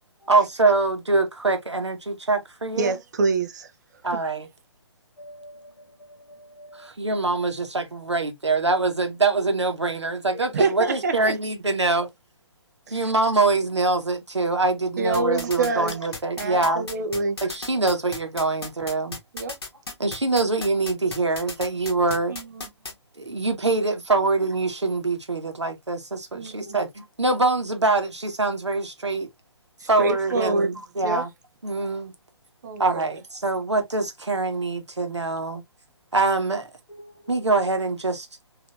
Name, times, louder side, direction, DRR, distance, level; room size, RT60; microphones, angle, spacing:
voice 1, 0.3-2.9 4.0-4.5 6.7-12.1 12.9-16.9 17.4-19.2 20.0-22.4 23.2-29.3 29.8-31.3 31.6-32.1 32.8-35.6 36.1-36.7 37.3-38.3, right 3 dB, 75° right, 1.2 m, -24 dB
voice 2, 2.8-3.7 10.5-11.3 12.9-13.1 15.0-15.9 16.4-17.4 19.3-19.6 22.3-22.7 26.3-26.8 29.8-30.7 31.0-31.2 32.6-33.0, right 3 dB, 40° right, 0.7 m, -26 dB
voice 3, 5.2-6.9 10.3-10.5 24.2-24.3 26.6-26.8 27.3-27.4 36.9-37.4, left 1 dB, 85° left, 1.0 m, -46 dB
sound 1, 15.1-22.9, left 3 dB, 55° left, 1.3 m, -34 dB
4.2 x 2.8 x 2.4 m
figure-of-eight pair, 135°, 15 cm